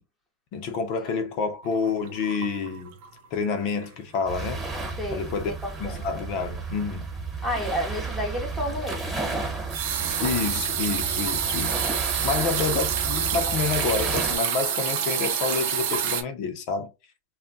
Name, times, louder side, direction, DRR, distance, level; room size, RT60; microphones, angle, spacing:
voice 1, 0.5-3.0 3.3-4.6 5.1-5.5 5.8-7.0 10.2-11.9 12.2-16.9, left 5 dB, 50° left, 0.6 m, -28 dB
sound 1, 1.6-3.3 3.5-3.9 4.2-4.3 8.9-16.2, right 8 dB, 60° right, 0.6 m, -28 dB
sound 2, 4.2-14.4, right 3 dB, 15° right, 1.2 m, -33 dB
voice 2, 5.0-5.3 5.6-6.0 7.4-9.2 12.3-12.5, equal, 5° left, 0.8 m, -31 dB
2.3 x 2.2 x 3.8 m
supercardioid pair, 140°, 0 cm